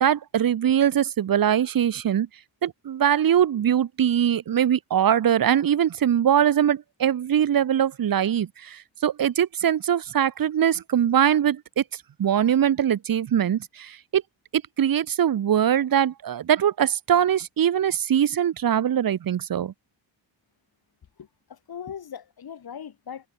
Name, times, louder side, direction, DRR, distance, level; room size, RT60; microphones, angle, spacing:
voice 1, 0.0-2.3 2.6-11.8 12.2-14.2 14.5-19.7, right 9 dB, 50° right, 0.9 m, -22 dB
voice 2, 21.2-23.3, left 8 dB, 55° left, 2.1 m, -39 dB
wide cardioid pair, 135°, 46 cm